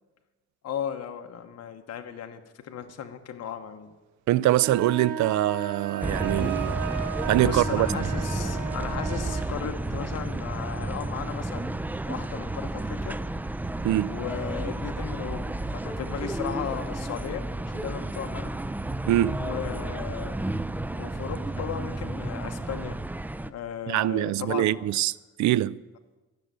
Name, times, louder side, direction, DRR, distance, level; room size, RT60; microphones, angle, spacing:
voice 1, 0.6-3.9 7.4-13.2 14.1-15.4 15.7-18.5 19.4-20.3 20.9-23.0 23.4-24.8, left 8 dB, 55° left, 1.0 m, -36 dB
voice 2, 4.3-6.8 7.3-8.1 13.8-14.2 19.1-19.4 23.9-25.8, right 14 dB, 70° right, 0.5 m, -24 dB
sound 1, 4.6-9.5, right 7 dB, 85° right, 1.4 m, -35 dB
sound 2, 6.0-23.5, right 2 dB, 5° right, 0.4 m, -32 dB
13.5 x 6.5 x 9.0 m
cardioid pair, 90°, 30 cm